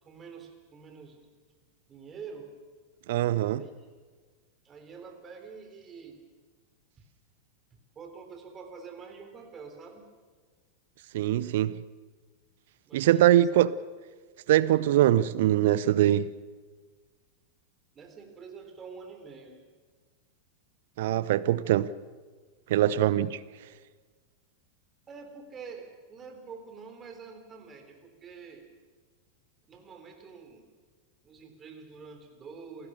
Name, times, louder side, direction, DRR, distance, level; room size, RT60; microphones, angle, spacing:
voice 1, 0.0-1.3 1.6-2.5 3.4-3.9 4.6-6.3 7.0-7.1 7.7-10.1 12.9-13.5 17.9-19.6 22.9-23.3 25.1-28.7 29.7-30.6 31.2-32.9, right 5 dB, 25° right, 3.7 m, -46 dB
voice 2, 3.1-3.6 11.1-11.8 12.9-13.7 14.5-16.3 21.0-21.9 22.7-23.3, right 13 dB, 55° right, 0.7 m, -22 dB
28.5 x 15.5 x 6.9 m
figure-of-eight pair, 90°, 0 cm